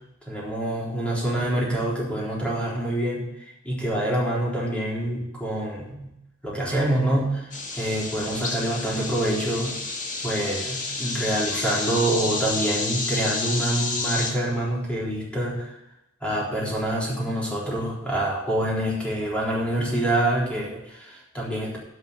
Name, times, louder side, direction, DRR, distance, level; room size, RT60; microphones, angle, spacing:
voice 1, 0.3-6.1 6.4-9.8 10.2-15.7 16.2-21.8, right 1 dB, 5° left, -5 dB, 3.9 m, -26 dB
sound 1, 7.5-14.3, left 3 dB, 40° left, 1.9 m, -30 dB
11.0 x 5.7 x 8.7 m, 0.86 s
head